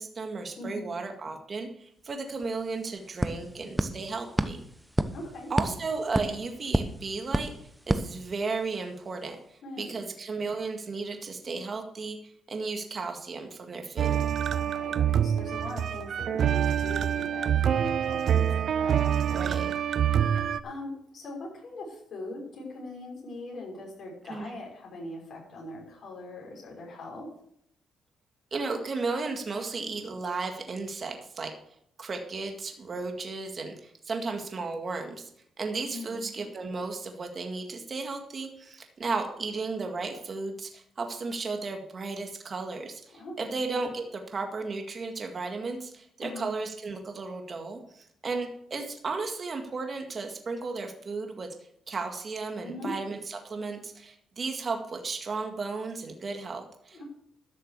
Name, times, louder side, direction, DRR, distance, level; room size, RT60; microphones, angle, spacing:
voice 1, 0.0-4.6 5.5-7.5 7.9-14.2 19.3-19.7 24.3-24.5 28.5-31.5 32.0-35.3 35.6-51.5 51.9-57.0, right 4 dB, 40° right, 3 dB, 2.0 m, -34 dB
voice 2, 0.6-0.9 5.1-5.5 9.6-10.1 14.5-19.6 20.6-27.3 35.9-36.3 43.1-43.5 46.2-46.5 52.6-52.9 56.9-57.0, left 1 dB, 60° left, -2 dB, 6.1 m, -41 dB
sound 1, 2.1-2.2 2.4-8.8, right 1 dB, 5° right, 0.9 m, -32 dB
sound 2, 14.0-20.6, right 9 dB, 65° right, 0.5 m, -26 dB
12.5 x 6.7 x 6.7 m, 0.70 s
cardioid pair, 90°, 0 cm